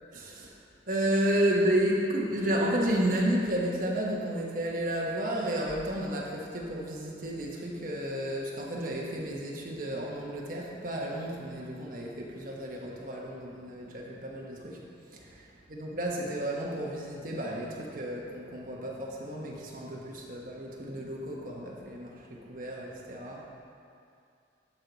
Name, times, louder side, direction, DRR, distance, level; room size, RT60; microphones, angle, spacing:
voice 1, 0.1-0.6 0.9-23.5, right 1 dB, 45° right, -3 dB, 1.1 m, -32 dB
11.5 x 4.6 x 4.0 m, 2.5 s
head